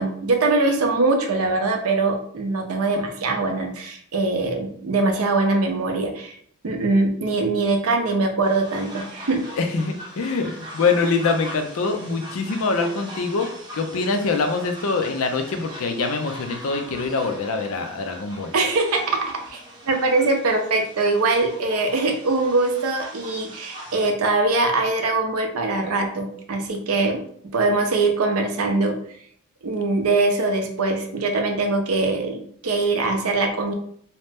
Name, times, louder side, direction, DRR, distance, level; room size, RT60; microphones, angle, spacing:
voice 1, 0.0-6.3 6.6-9.5 18.5-27.2 27.5-29.0 29.6-33.7, right 3 dB, 75° right, 3 dB, 0.5 m, -22 dB
sound 1, 8.4-24.1, equal, 20° right, 0.7 m, -41 dB
voice 2, 9.6-13.5 13.7-18.5, left 4 dB, 70° left, 6 dB, 0.4 m, -24 dB
2.8 x 2.0 x 3.3 m, 0.64 s
head